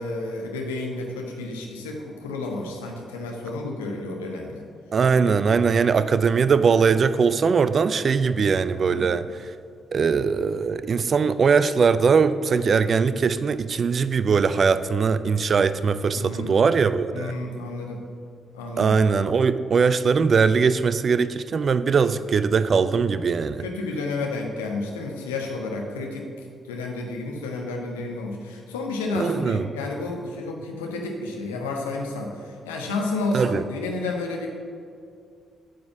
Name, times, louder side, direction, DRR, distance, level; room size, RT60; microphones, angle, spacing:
voice 1, 0.0-4.6 5.1-5.3 8.8-9.1 16.1-16.6 17.1-18.0 18.5-19.0 22.0-22.1 23.6-26.3 26.7-34.5, left 3 dB, 75° left, 1 dB, 1.1 m, -31 dB
voice 2, 4.9-9.2 9.9-17.3 18.8-23.6 29.1-29.6 33.3-33.6, right 5 dB, 45° right, 13 dB, 0.4 m, -21 dB
9.0 x 5.1 x 7.0 m, 2.3 s
figure-of-eight pair, 40°, 0 cm